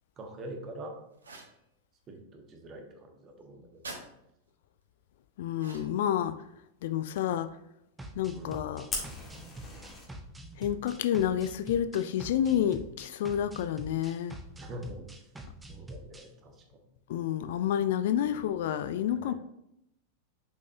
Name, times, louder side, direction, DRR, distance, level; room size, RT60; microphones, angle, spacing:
voice 1, 0.2-0.9 2.1-4.0 8.3-9.2 14.6-15.3 15.7-16.8 18.1-18.5 18.9-19.3, right 1 dB, 30° right, 1.3 m, -45 dB
sound 1, 1.2-1.6 3.8-4.0 5.5-6.1, right 3 dB, 75° right, 1.2 m, -44 dB
voice 2, 5.4-6.4 6.8-7.6 8.2-8.9 10.6-14.4 17.1-19.3, left 10 dB, 55° left, 0.3 m, -29 dB
sound 2, 8.0-16.3, right 1 dB, 10° right, 0.8 m, -46 dB
Fire, 8.9-10.0, left 2 dB, 20° left, 1.9 m, -38 dB
6.9 x 5.3 x 2.8 m
figure-of-eight pair, 90°, 0 cm